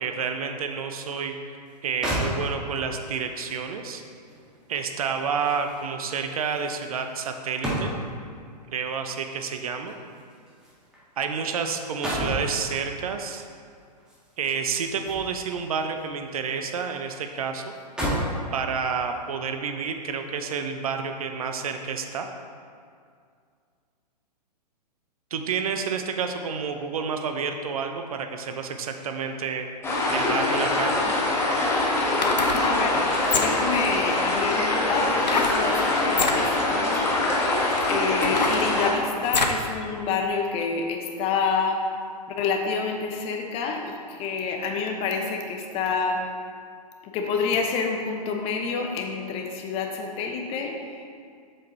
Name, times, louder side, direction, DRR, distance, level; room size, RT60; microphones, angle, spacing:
voice 1, 0.0-4.0 4.7-7.9 8.7-9.9 11.2-13.4 14.4-17.6 18.5-22.3 25.3-29.7 30.1-31.0, right 6 dB, 55° right, 6 dB, 0.8 m, -29 dB
sound 1, 1.7-1.8 2.0-2.9 4.3-8.3 9.3-11.5 11.8-12.5 14.0-15.6 16.0-16.9 17.2-17.3 17.7-18.4 19.1-19.3, equal, 5° right, 1.9 m, -33 dB
sound 2, 29.8-38.9, left 2 dB, 10° left, 1.5 m, -24 dB
sound 3, 30.9-31.0 32.0-32.6 33.2-33.7 35.2-35.6 36.1-36.4 37.1-37.2 37.8-39.6 40.1-40.2, left 4 dB, 80° left, 0.8 m, -26 dB
voice 2, 32.2-33.1 33.3-37.3 37.9-41.8 42.4-46.2 47.0-51.0, left 5 dB, 25° left, 3 dB, 0.9 m, -28 dB
7.6 x 7.3 x 4.0 m, 2.2 s
figure-of-eight pair, 115°, 21 cm